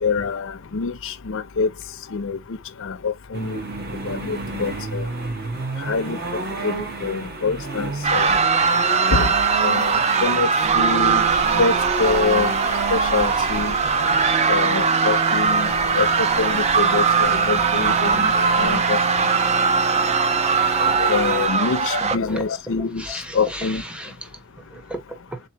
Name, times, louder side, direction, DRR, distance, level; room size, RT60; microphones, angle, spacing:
voice 1, 0.0-1.7 2.1-2.4 2.8-3.6 4.0-5.0 5.9-6.2 6.6-8.4 9.1-9.3 9.6-10.5 10.7-11.2 11.6-12.5 12.9-14.1 14.5-18.3 18.6-19.0 21.0-23.8, left 4 dB, 60° left, 0.6 m, -25 dB
sound 1, 3.3-21.5, right 2 dB, 45° right, 1.1 m, -30 dB
sound 2, 8.0-22.2, right 5 dB, 30° right, 0.4 m, -20 dB
sound 3, 10.6-18.8, right 3 dB, 75° right, 0.8 m, -36 dB
voice 2, 23.0-25.4, right 1 dB, 5° right, 0.8 m, -35 dB
3.9 x 2.9 x 2.9 m
head